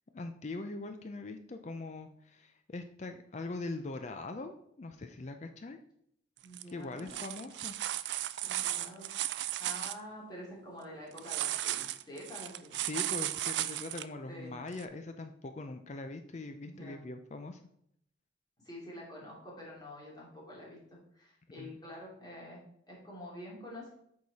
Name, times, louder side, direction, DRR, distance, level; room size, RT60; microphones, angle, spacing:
voice 1, 0.1-5.8 6.7-7.7 12.7-17.6 21.6-21.8, left 2 dB, 40° left, 7 dB, 0.4 m, -42 dB
voice 2, 6.4-7.2 8.4-9.1 9.4-12.7 14.3-14.5 16.6-17.0 18.6-23.9, left 1 dB, 25° left, -4 dB, 2.5 m, -47 dB
sound 1, 6.4-6.6 7.0-10.0 11.2-14.0 14.8-14.9, right 13 dB, 70° right, 0.4 m, -35 dB
8.4 x 4.8 x 4.1 m, 0.72 s
head